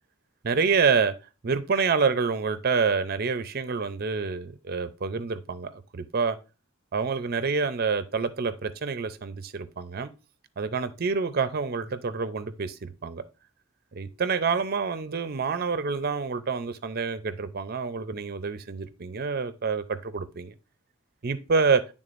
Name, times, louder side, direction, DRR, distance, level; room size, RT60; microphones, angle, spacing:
voice 1, 0.4-1.1 1.4-6.4 6.9-10.1 10.6-13.2 14.0-20.5 21.2-21.8, right 5 dB, 45° right, 0.5 m, -27 dB
11.0 x 3.6 x 2.5 m
head